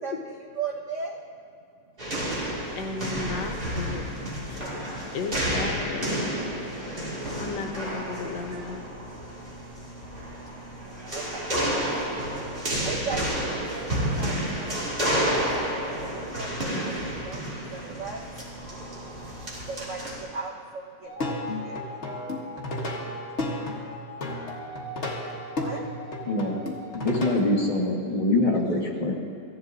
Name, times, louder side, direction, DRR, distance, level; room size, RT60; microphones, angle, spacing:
voice 1, 0.0-1.2 4.6-4.7 7.7-13.2 13.5-15.3 16.1-21.9 22.4-22.6 23.0-24.6 24.8-26.3, right 5 dB, 60° right, -1 dB, 0.8 m, -40 dB
sound 1, 2.0-20.2, equal, 30° right, 2.2 m, -30 dB
voice 2, 2.7-4.0 4.5-6.3 7.4-8.8, left 4 dB, 75° left, 4 dB, 1.5 m, -35 dB
Plucked string instrument, 21.0-27.5, left 1 dB, 40° left, 1.4 m, -33 dB
voice 3, 26.3-26.6 26.9-29.1, left 2 dB, 25° left, -3 dB, 1.1 m, -24 dB
16.0 x 11.0 x 2.5 m, 2.5 s
omnidirectional pair, 2.0 m